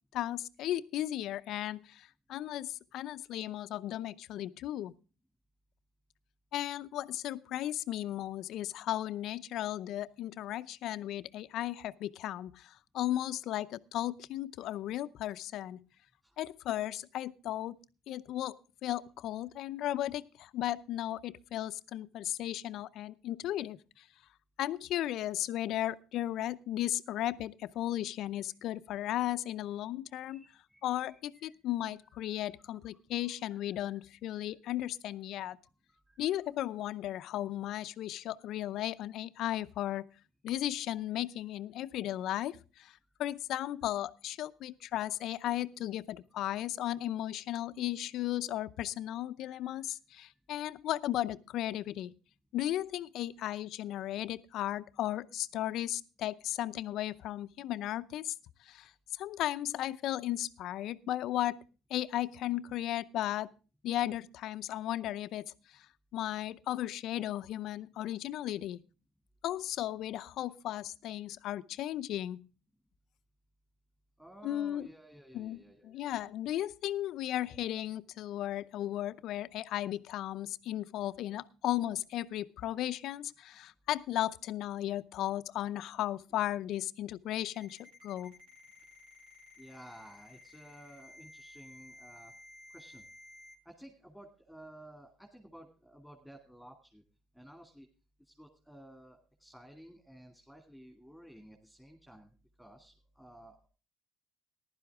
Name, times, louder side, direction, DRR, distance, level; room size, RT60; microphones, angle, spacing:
voice 1, 0.1-4.9 6.5-15.8 16.4-17.8 18.1-18.6 18.8-24.0 24.6-30.4 30.8-35.6 36.2-40.0 40.4-42.9 43.2-52.1 52.5-58.3 58.6-61.6 61.9-63.5 63.8-65.9 66.1-68.8 69.4-72.5 74.4-74.9 75.3-88.3, left 13 dB, 65° left, 14 dB, 0.6 m, -35 dB
voice 2, 30.3-31.6 32.0-32.8 33.5-34.0 34.4-34.5 35.9-36.3 41.1-41.2 49.5-49.8 50.6-50.7 74.2-76.2 89.6-92.3 92.7-93.0 93.6-97.0 97.3-97.9 98.3-102.3 102.6-103.7, right 1 dB, ahead, 3 dB, 2.5 m, -54 dB
Ringtone, 87.5-93.5, left 2 dB, 75° right, 3.8 m, -55 dB
15.0 x 11.5 x 3.6 m, 0.33 s
supercardioid pair, 85°, 0 cm